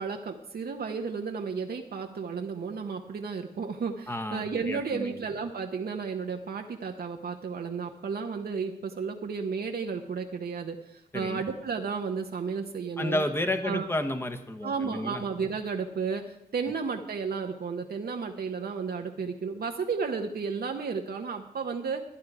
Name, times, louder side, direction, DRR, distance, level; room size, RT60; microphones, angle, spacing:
voice 1, 0.0-13.2 13.6-13.9 14.6-22.0, right 5 dB, 70° right, 3 dB, 0.9 m, -33 dB
voice 2, 4.1-5.2 11.1-11.4 13.0-15.2, left 1 dB, 15° left, 6 dB, 1.0 m, -31 dB
11.5 x 10.5 x 4.7 m, 0.77 s
wide cardioid pair, 100°, 17 cm